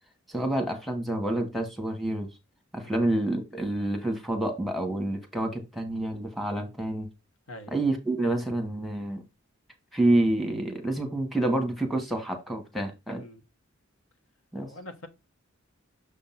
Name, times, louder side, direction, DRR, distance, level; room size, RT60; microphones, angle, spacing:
voice 1, 0.3-2.3 2.7-7.1 7.7-9.2 9.9-13.2 14.5-14.7, right 1 dB, ahead, 1.1 m, -28 dB
voice 2, 14.6-15.1, left 1 dB, 80° left, 1.1 m, -43 dB
6.6 x 2.6 x 5.6 m
head